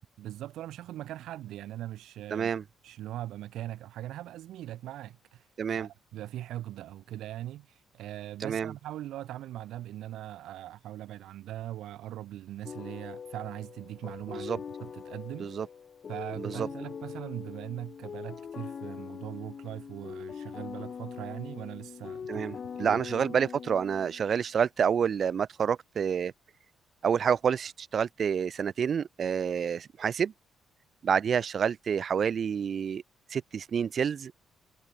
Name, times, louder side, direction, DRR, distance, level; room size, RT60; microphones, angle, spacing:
voice 1, 0.2-2.5 2.8-5.5 5.7-15.5 16.1-22.5 22.7-23.4, right 13 dB, 85° right, 0.8 m, -40 dB
voice 2, 2.3-2.6 5.6-5.9 8.4-8.7 14.3-14.6 15.4-15.7 16.4-16.7 22.3-26.3 27.0-30.3 31.0-33.0 33.3-34.3, right 7 dB, 50° right, 0.8 m, -28 dB
sound 1, 12.6-24.4, left 6 dB, 50° left, 0.4 m, -42 dB
cardioid pair, 90°, 0 cm